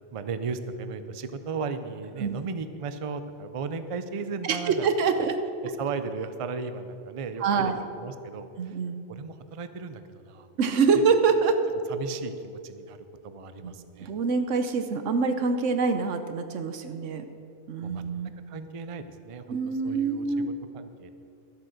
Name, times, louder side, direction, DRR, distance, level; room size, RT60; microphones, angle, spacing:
voice 1, 0.1-4.9 5.2-5.3 5.6-8.8 9.1-10.5 11.9-13.0 13.2-14.1 17.8-18.0 18.5-19.6 19.8-21.1, right 5 dB, 40° right, 10 dB, 0.5 m, -36 dB
voice 2, 4.4-5.4 7.4-7.8 8.6-9.0 10.6-11.6 13.6-13.7 14.0-17.2 17.7-18.3 19.5-20.5, right 5 dB, 90° right, 8 dB, 1.2 m, -25 dB
13.0 x 7.8 x 6.4 m, 2.6 s
omnidirectional pair, 1.2 m